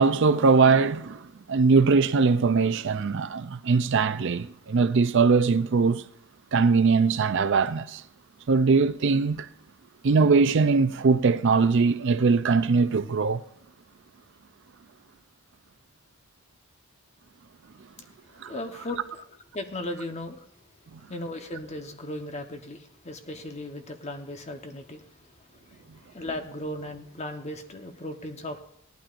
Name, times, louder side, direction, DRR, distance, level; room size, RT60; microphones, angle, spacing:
voice 1, 0.0-6.0 6.5-8.0 8.5-9.5 10.0-13.4 18.4-18.5 20.9-21.0, right 4 dB, 60° right, 0.5 m, -21 dB
voice 2, 18.3-19.2 19.5-20.5 21.1-25.1 25.4-28.6, left 1 dB, 30° left, 1.1 m, -37 dB
18.0 x 11.5 x 2.6 m
head